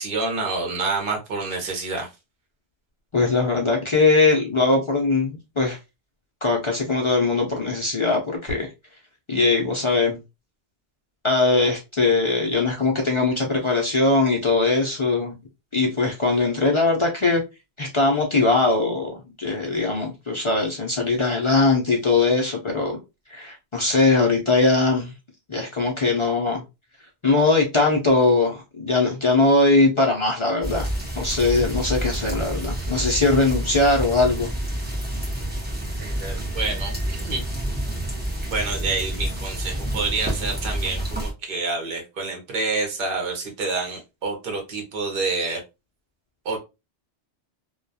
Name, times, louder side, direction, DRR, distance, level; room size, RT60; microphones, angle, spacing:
voice 1, 0.0-2.1 36.0-37.4 38.5-45.6 46.4-46.6, right 3 dB, 55° right, 0.9 m, -28 dB
voice 2, 3.1-5.8 6.4-8.7 9.3-10.2 11.2-15.3 15.7-17.4 17.8-23.0 23.3-25.1 25.5-26.6 27.2-30.9 31.2-34.5, left 3 dB, 55° left, 0.3 m, -21 dB
sound 1, 30.6-41.3, right 1 dB, 10° right, 0.6 m, -28 dB
2.3 x 2.2 x 2.6 m
omnidirectional pair, 1.2 m